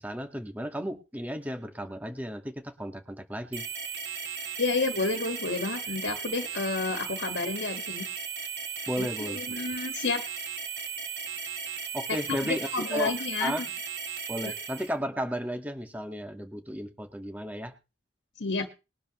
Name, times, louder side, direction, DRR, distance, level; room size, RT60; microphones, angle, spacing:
voice 1, 0.0-3.7 8.9-9.4 11.9-13.1 13.4-13.7 14.3-17.7, equal, 10° right, 5 dB, 1.6 m, -34 dB
sound 1, 3.5-14.9, right 6 dB, 70° right, 2.9 m, -36 dB
voice 2, 4.6-8.1 9.0-10.2 12.3-13.5 14.4-14.5 18.4-18.7, left 3 dB, 80° left, 5 dB, 1.7 m, -30 dB
21.5 x 12.0 x 3.1 m, 0.30 s
head